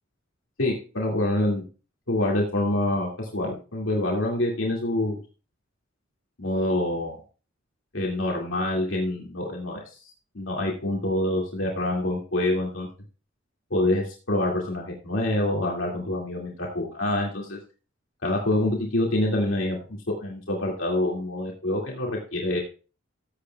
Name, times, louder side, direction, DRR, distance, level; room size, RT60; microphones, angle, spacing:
voice 1, 0.6-1.6 2.1-5.2 6.4-7.2 7.9-9.8 10.3-12.9 13.7-17.6 18.2-19.8 20.2-22.6, left 1 dB, 75° left, -2 dB, 2.3 m, -26 dB
14.5 x 8.5 x 2.3 m, 0.35 s
head